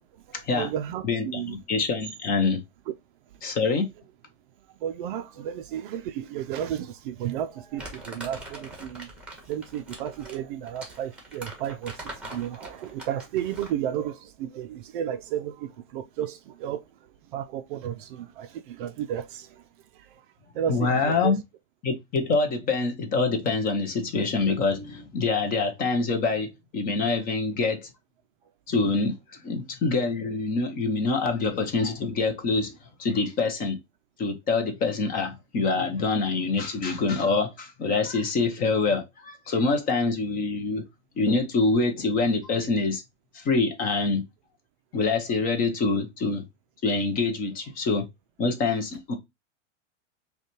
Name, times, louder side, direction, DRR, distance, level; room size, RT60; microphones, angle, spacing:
voice 1, 0.3-1.6 4.8-9.1 9.5-16.8 17.3-19.6 20.0-20.2 20.5-21.4, right 10 dB, 45° right, 0.4 m, -33 dB
voice 2, 1.1-2.6 3.4-3.9 20.7-21.4 21.8-27.9 28.7-32.7 33.0-33.8 34.2-40.8 41.2-43.0 43.3-44.2 44.9-46.4 46.8-48.1 48.4-49.1, left 3 dB, 25° left, 0.6 m, -25 dB
Crumpling crinkling, 7.8-13.8, right 1 dB, 5° right, 1.1 m, -42 dB
5.2 x 2.3 x 2.9 m
supercardioid pair, 145°, 37 cm